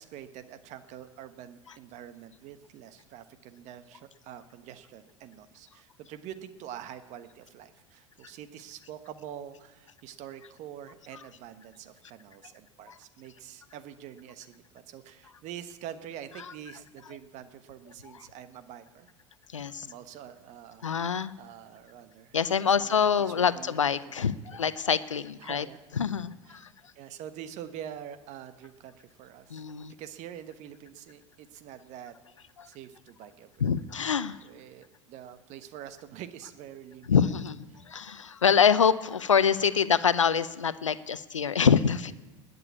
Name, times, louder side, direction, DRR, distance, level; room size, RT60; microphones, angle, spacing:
voice 1, 0.0-19.1 19.8-24.6 25.4-25.8 26.5-26.6 26.9-29.6 30.0-32.1 32.6-33.5 34.4-37.3 37.7-37.9, right 10 dB, 50° right, 11 dB, 1.3 m, -45 dB
voice 2, 19.5-19.9 20.8-21.3 22.3-25.7 25.9-26.7 29.5-29.9 32.6-32.7 33.6-34.4 37.1-42.1, left 7 dB, 90° left, 16 dB, 0.6 m, -25 dB
20.0 x 6.9 x 8.5 m, 1.1 s
hypercardioid pair, 80°, 16 cm